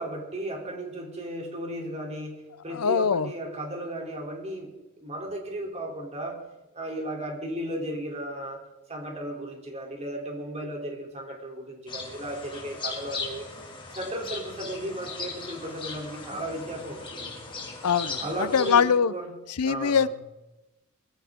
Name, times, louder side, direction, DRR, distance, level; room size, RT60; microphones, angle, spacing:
voice 1, 0.0-6.4 6.7-8.6 8.9-13.5 13.9-17.5 18.2-19.4 19.6-20.1, right 1 dB, 30° right, 1 dB, 3.2 m, -35 dB
voice 2, 2.7-3.3 17.8-19.1 19.6-20.1, left 6 dB, 90° left, 16 dB, 0.6 m, -23 dB
sound 1, 11.9-18.7, left 4 dB, 20° left, 2.3 m, -38 dB
22.0 x 14.5 x 3.7 m, 1.0 s
head